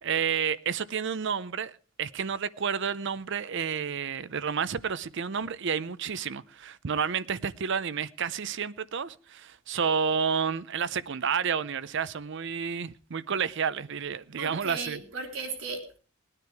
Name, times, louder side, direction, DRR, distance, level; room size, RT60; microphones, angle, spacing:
voice 1, 0.0-15.0, right 6 dB, 60° right, 0.6 m, -30 dB
voice 2, 14.4-16.0, right 4 dB, 85° right, 3.8 m, -36 dB
19.5 x 9.9 x 4.7 m
head